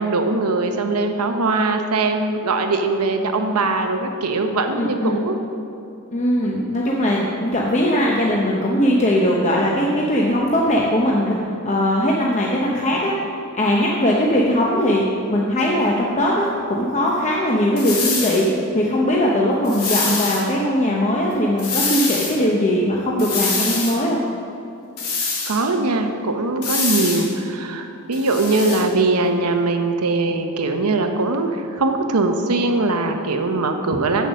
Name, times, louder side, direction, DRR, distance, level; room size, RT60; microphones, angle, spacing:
voice 1, 0.0-5.4 6.4-6.5 13.8-14.0 17.0-17.2 25.5-34.3, right 3 dB, 85° right, 5 dB, 0.8 m, -21 dB
voice 2, 4.8-5.2 6.1-11.4 11.6-13.1 13.6-15.0 15.3-18.5 18.7-24.2, left 1 dB, 30° left, -3 dB, 0.8 m, -20 dB
sound 1, 17.8-18.4 19.6-20.4 21.6-22.3 23.2-24.0 25.0-25.6 26.6-27.3 28.1-28.8, left 4 dB, 80° left, 2.2 m, -24 dB
8.0 x 6.6 x 6.3 m, 2.6 s
head